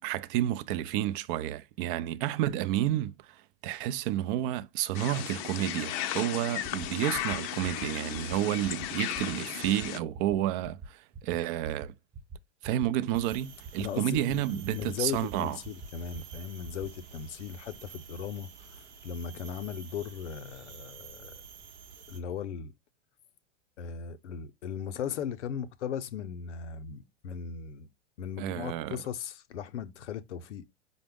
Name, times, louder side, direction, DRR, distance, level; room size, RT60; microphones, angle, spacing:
voice 1, 0.0-3.4 3.6-11.9 12.6-15.6 28.4-29.0, right 13 dB, 50° right, 0.5 m, -30 dB
sound 1, 4.9-10.0, left 11 dB, 40° left, 0.5 m, -35 dB
sound 2, 6.6-6.9 7.1-7.4 7.6-7.9 8.1-8.4 8.6-8.9 9.1-9.4 9.6-9.9 10.1-10.4 10.6-10.9 11.1-11.4 11.6-11.9 12.1-12.4 12.6-12.9 13.1-13.4 13.6-13.9 14.1-14.4 14.6-14.9 15.1-15.4 15.6-15.9 16.1-16.4 16.6-16.9, right 3 dB, 20° right, 1.0 m, -43 dB
sound 3, 13.1-22.2, right 6 dB, 75° right, 0.8 m, -50 dB
voice 2, 13.8-21.4 22.1-22.7 23.8-27.9 28.2-30.6, left 8 dB, 80° left, 0.6 m, -37 dB
5.2 x 2.1 x 3.5 m
hypercardioid pair, 100°, 35 cm